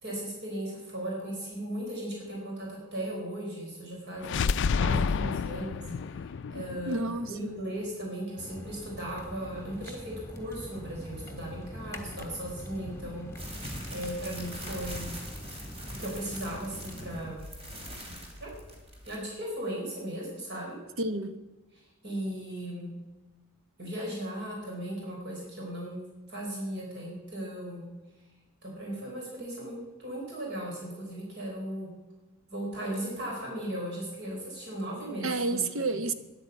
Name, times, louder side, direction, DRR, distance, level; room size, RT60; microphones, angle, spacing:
voice 1, 0.0-6.9 7.3-15.2 16.0-17.4 18.4-18.5 19.1-20.8 21.8-22.9 23.8-26.0 26.3-27.9 28.6-31.9 32.5-35.6, right 1 dB, 55° right, 4.4 m, -37 dB
sound 1, 4.2-8.1, left 5 dB, 55° left, 0.4 m, -30 dB
voice 2, 6.9-7.6 21.0-21.4 35.2-36.1, right 2 dB, 70° right, 0.9 m, -30 dB
sound 2, 8.4-17.3, left 1 dB, 15° left, 1.6 m, -43 dB
sound 3, 13.4-19.2, equal, 30° right, 2.8 m, -43 dB
10.5 x 9.4 x 8.3 m
head